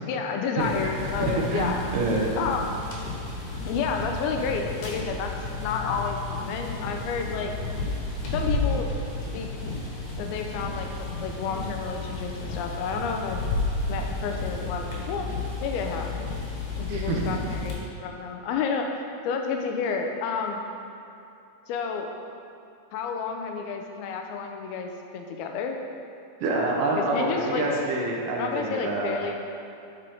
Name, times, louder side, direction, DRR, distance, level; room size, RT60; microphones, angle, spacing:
voice 1, 0.1-1.8 2.4-2.8 3.7-5.3 5.6-7.5 8.3-8.9 9.3-9.5 10.2-13.4 13.9-15.3 15.6-16.1 16.8-18.9 19.3-20.6 21.7-22.1 22.9-25.8 27.0-27.7 28.4-29.3, left 5 dB, 85° left, 3 dB, 2.5 m, -30 dB
sound 1, 0.6-17.7, left 3 dB, 60° left, 2.7 m, -32 dB
voice 2, 1.2-2.3 16.9-17.5 26.4-29.1, right 2 dB, 70° right, -2 dB, 2.3 m, -27 dB
11.0 x 5.0 x 4.5 m, 2.7 s
omnidirectional pair, 4.4 m